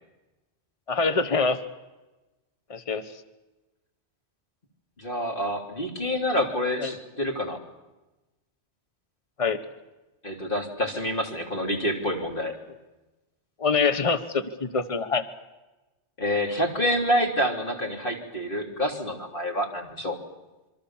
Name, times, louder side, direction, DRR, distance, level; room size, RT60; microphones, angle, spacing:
voice 1, 0.9-1.6 2.7-3.0 6.8-6.9 9.4-9.6 13.6-15.2, left 4 dB, 30° left, 11 dB, 1.3 m, -24 dB
voice 2, 5.0-7.6 10.2-12.5 16.2-20.2, equal, 45° left, 2 dB, 3.4 m, -27 dB
26.5 x 24.0 x 7.3 m, 1.1 s
omnidirectional pair, 1.2 m